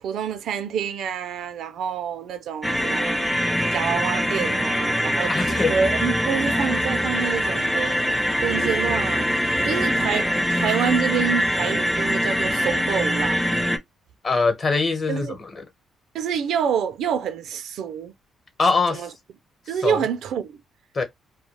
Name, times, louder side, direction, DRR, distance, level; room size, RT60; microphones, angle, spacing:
voice 1, 0.0-3.2 3.7-7.9 8.4-9.3 9.6-13.4 15.1-15.4 16.1-18.1 18.9-19.1 19.7-20.6, right 7 dB, 75° right, 0.4 m, -27 dB
sound 1, 2.6-13.8, equal, ahead, 0.5 m, -23 dB
voice 2, 5.3-5.7 14.2-15.6 18.6-19.1 19.8-20.0 20.9-21.0, left 4 dB, 45° left, 0.9 m, -22 dB
2.3 x 2.1 x 3.1 m
cardioid pair, 90°, 0 cm